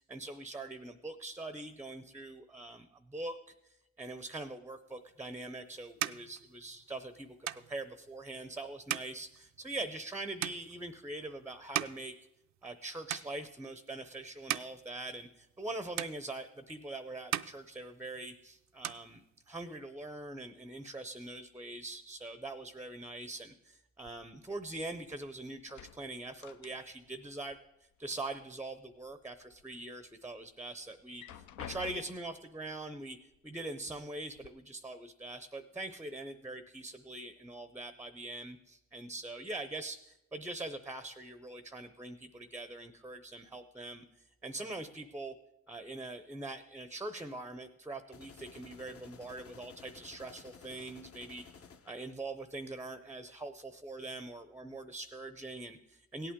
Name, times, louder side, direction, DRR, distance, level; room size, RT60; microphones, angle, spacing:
voice 1, 0.0-3.4 3.6-12.1 12.6-27.6 28.0-33.2 33.4-44.0 44.4-45.3 45.7-51.4 51.9-56.3, right 2 dB, 10° right, 11 dB, 0.5 m, -43 dB
sound 1, 5.1-12.8 13.1-13.8 14.2-15.7 16.0-16.8 17.1-18.4 18.6-19.8, right 13 dB, 65° right, 0.4 m, -41 dB
sound 2, 24.0-25.3 25.6-27.2 27.5-28.5 28.9-29.6 30.1-30.2 31.0-32.4 33.3-33.4 33.9-34.5, left 10 dB, 75° left, 0.6 m, -50 dB
sound 3, 48.1-52.1, left 5 dB, 50° left, 0.9 m, -55 dB
17.0 x 8.6 x 3.7 m, 0.86 s
cardioid pair, 90°, 30 cm